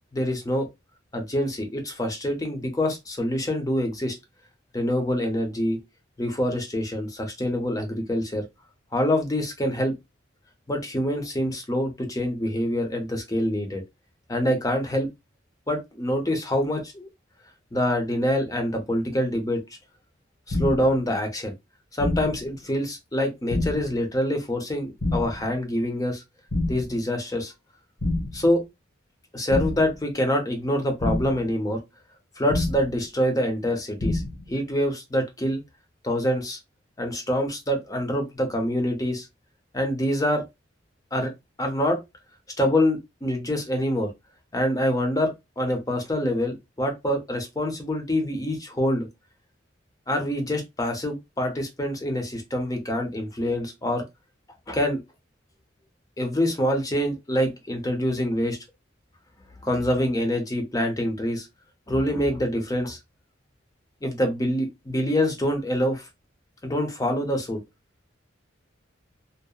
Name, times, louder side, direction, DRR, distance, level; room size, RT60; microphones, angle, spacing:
voice 1, 0.1-0.7 1.1-4.2 4.7-5.8 6.2-8.4 8.9-9.9 10.7-13.8 14.3-15.1 15.7-17.1 17.7-19.6 20.5-21.5 21.9-26.2 26.7-27.5 28.3-28.6 29.3-31.8 32.4-34.2 34.5-35.6 36.0-36.6 37.0-39.3 39.7-40.4 41.1-41.3 41.6-42.0 42.6-44.1 44.5-49.1 50.1-54.0 54.7-55.0 56.2-58.6 59.6-61.5 61.9-63.0 64.0-66.1 66.6-67.6, equal, 15° left, 0.5 m, -25 dB
sound 1, 20.5-21.0 22.0-22.5 23.5-24.0 25.0-25.5 26.5-27.0 28.0-28.5 29.5-30.0 31.0-31.5 32.5-33.0 34.0-34.5, left 2 dB, 75° left, 0.9 m, -27 dB
2.8 x 2.0 x 2.2 m
head